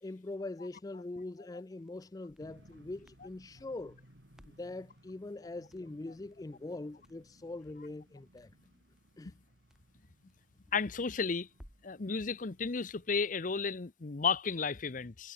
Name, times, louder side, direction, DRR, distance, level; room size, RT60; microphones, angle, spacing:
voice 1, 0.0-4.0 4.5-8.5 9.2-9.3, left 2 dB, 20° left, 0.4 m, -43 dB
Crackle, 1.8-12.0, equal, 5° right, 1.8 m, -64 dB
sound 1, 2.4-13.7, right 1 dB, 75° right, 4.1 m, -63 dB
voice 2, 10.7-11.5 11.8-15.3, left 5 dB, 45° left, 0.7 m, -33 dB
head